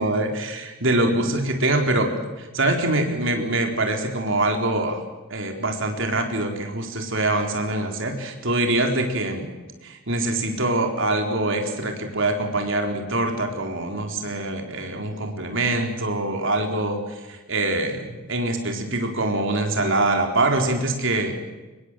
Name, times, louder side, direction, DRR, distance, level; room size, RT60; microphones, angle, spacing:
voice 1, 0.0-2.1 2.4-5.0 5.3-9.5 9.8-21.3, right 2 dB, 60° right, 4 dB, 3.9 m, -24 dB
25.0 x 21.5 x 7.6 m, 1.1 s
head